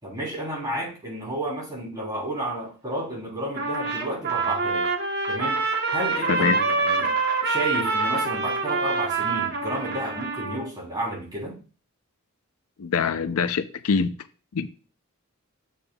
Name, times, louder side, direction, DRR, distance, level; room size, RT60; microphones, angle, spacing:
voice 1, 0.0-4.9 5.3-5.6 5.9-7.2 7.4-11.6, right 1 dB, 20° right, 3.3 m, -31 dB
Trumpet, 3.6-10.7, right 4 dB, 50° right, 1.1 m, -26 dB
voice 2, 6.3-6.6 12.8-14.1 14.5-14.7, left 5 dB, 80° left, 0.5 m, -24 dB
8.6 x 7.1 x 2.3 m
head